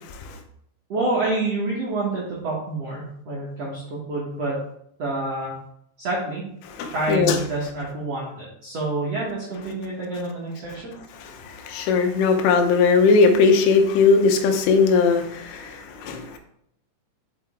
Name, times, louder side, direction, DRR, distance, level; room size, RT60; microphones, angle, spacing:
voice 1, 0.9-4.6 5.0-5.5 6.0-6.4 6.9-10.9, right 2 dB, 80° right, -6 dB, 1.4 m, -28 dB
voice 2, 6.8-7.4 11.2-16.4, left 4 dB, 85° left, 5 dB, 3.5 m, -19 dB
7.6 x 5.5 x 3.7 m, 0.72 s
omnidirectional pair, 5.6 m